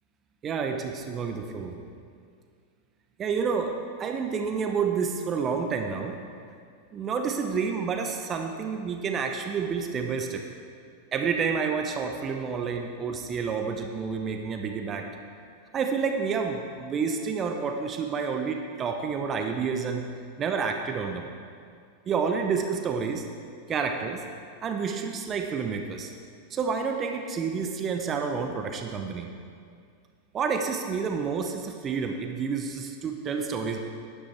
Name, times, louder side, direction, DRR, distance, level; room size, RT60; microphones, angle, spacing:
voice 1, 0.4-1.8 3.2-3.7 4.0-6.2 6.9-10.5 11.1-15.1 15.7-20.1 20.4-21.3 22.1-23.3 23.7-24.2 24.6-26.1 26.5-29.3 30.3-33.8, right 5 dB, 25° right, 4 dB, 0.8 m, -29 dB
11.5 x 10.0 x 4.6 m, 2.2 s
figure-of-eight pair, 90°, 0 cm